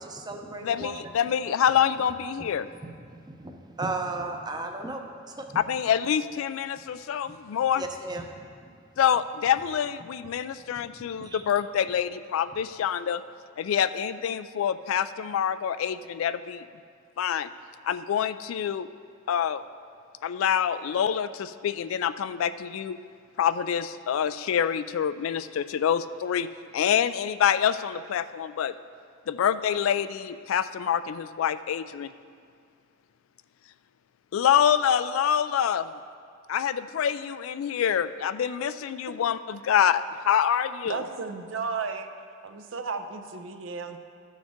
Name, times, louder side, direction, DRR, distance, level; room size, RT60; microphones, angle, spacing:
voice 1, 0.0-1.1 2.8-5.6 7.8-8.3 8.6-8.7 10.7-10.9 11.1-11.4, right 2 dB, 20° right, 4 dB, 0.7 m, -35 dB
voice 2, 0.6-2.7 5.7-7.8 9.0-13.2 13.6-16.6 17.2-17.5 17.8-18.9 19.3-19.6 20.2-23.0 23.4-28.8 29.3-32.1 34.3-35.9 36.5-41.0, left 8 dB, 85° left, 13 dB, 0.3 m, -26 dB
voice 3, 40.8-42.1 42.4-44.0, right 5 dB, 70° right, 7 dB, 0.6 m, -33 dB
13.0 x 6.4 x 3.6 m, 2.2 s
head